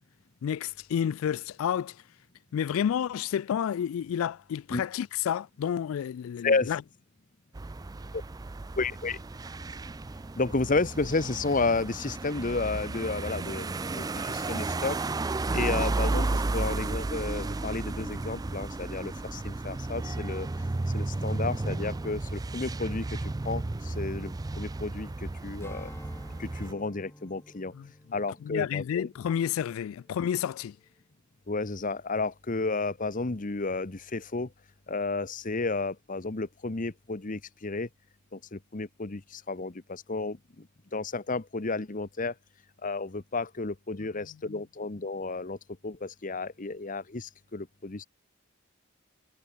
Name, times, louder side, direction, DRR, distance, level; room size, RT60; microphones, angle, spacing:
voice 1, 0.4-2.0 2.5-6.8 27.7-27.9 28.4-30.8 44.5-44.6, left 8 dB, 70° left, 0.3 m, -30 dB
sound 1, 7.5-26.7, right 2 dB, 15° right, 0.4 m, -33 dB
voice 2, 8.8-9.2 10.4-13.7 13.9-15.0 15.5-20.5 20.9-23.2 23.4-25.9 26.4-27.7 28.1-29.1 31.5-34.5 34.9-37.9 38.3-40.7 40.9-42.3 42.8-45.6 45.8-48.0, left 3 dB, 40° left, 1.0 m, -32 dB
Strum, 25.6-30.3 30.7-30.9, left 1 dB, 10° left, 6.0 m, -51 dB
head